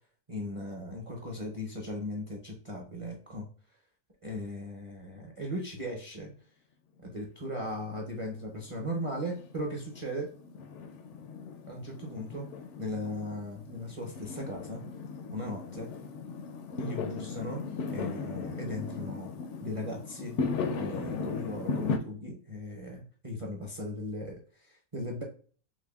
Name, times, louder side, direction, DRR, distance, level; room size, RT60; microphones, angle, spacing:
voice 1, 0.3-3.5 4.2-6.3 7.0-10.3 11.7-12.5 12.8-14.8 15.3-15.9 16.8-17.6 17.9-19.3 19.6-20.4 20.7-25.2, left 1 dB, 35° right, -1 dB, 0.5 m, -37 dB
Fireworks, 7.4-22.0, left 5 dB, 65° left, 0.7 m, -37 dB
6.0 x 2.2 x 2.3 m, 0.41 s
omnidirectional pair, 1.6 m